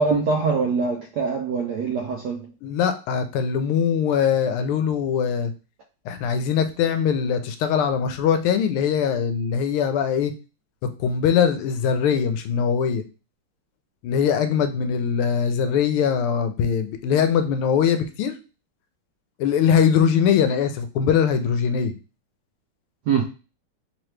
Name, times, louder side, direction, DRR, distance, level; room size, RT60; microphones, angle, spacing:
voice 1, 0.0-2.5 23.1-23.2, right 5 dB, 80° right, 0.9 m, -23 dB
voice 2, 2.6-5.5 6.0-10.3 11.0-13.0 14.0-18.3 19.4-21.9, left 7 dB, 85° left, 1.5 m, -21 dB
3.8 x 3.0 x 3.1 m
omnidirectional pair, 2.4 m